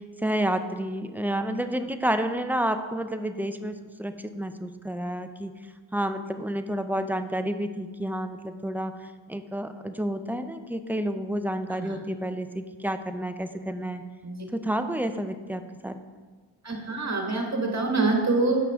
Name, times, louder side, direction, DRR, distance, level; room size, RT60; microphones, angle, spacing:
voice 1, 0.0-5.5 5.9-14.0 14.5-15.9, right 1 dB, 5° right, 8 dB, 0.4 m, -30 dB
voice 2, 16.6-18.6, right 3 dB, 35° right, 1 dB, 1.6 m, -25 dB
7.6 x 5.8 x 3.6 m, 1.4 s
cardioid pair, 45°, 47 cm